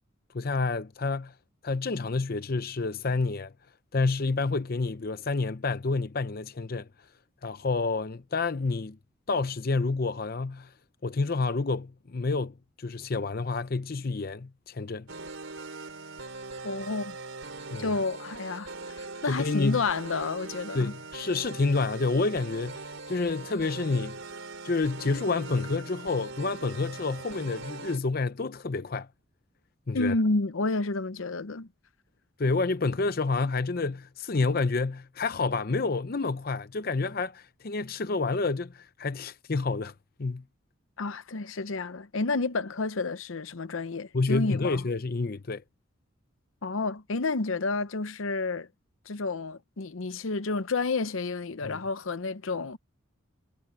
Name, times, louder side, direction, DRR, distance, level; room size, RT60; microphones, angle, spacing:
voice 1, 0.3-1.3 1.6-3.5 3.9-6.9 7.4-9.0 9.3-10.7 11.0-15.1 17.7-17.9 19.3-19.8 20.7-24.2 24.6-29.1 29.9-30.1 32.4-39.9 40.2-40.4 44.1-45.6 51.6-51.8, left 3 dB, 45° left, 0.6 m, -29 dB
sound 1, 15.1-28.0, right 3 dB, 70° right, 3.9 m, -41 dB
voice 2, 16.6-17.2 17.8-20.9 29.9-31.7 41.0-44.8 46.6-48.7 49.1-52.8, left 3 dB, 80° left, 0.8 m, -30 dB
head